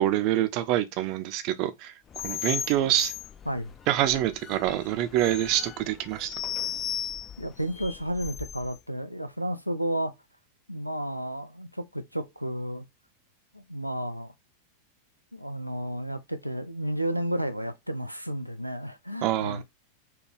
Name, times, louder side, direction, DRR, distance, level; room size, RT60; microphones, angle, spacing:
voice 1, 0.0-1.9 2.2-3.1 3.9-6.3 19.2-19.6, right 13 dB, 40° right, 0.5 m, -26 dB
sound 1, 2.1-8.8, left 9 dB, 25° left, 0.3 m, -36 dB
voice 2, 7.4-10.1 10.7-12.9 13.5-14.3 15.3-19.6, right 1 dB, 90° left, 0.4 m, -32 dB
4.5 x 2.2 x 3.3 m
figure-of-eight pair, 90°, 0 cm